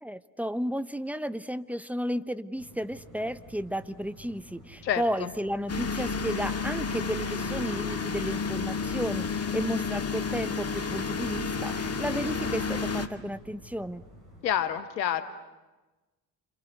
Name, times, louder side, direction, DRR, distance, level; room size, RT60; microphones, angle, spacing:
voice 1, 0.0-14.0, equal, 5° right, 13 dB, 1.0 m, -33 dB
sound 1, 2.6-14.4, equal, 90° right, 6.6 m, -51 dB
voice 2, 4.8-5.3 14.4-15.2, left 10 dB, 90° left, 11 dB, 1.3 m, -28 dB
sound 2, 5.7-13.1, left 5 dB, 30° left, 2.1 m, -31 dB
28.5 x 27.0 x 6.8 m, 1.1 s
hypercardioid pair, 45°, 49 cm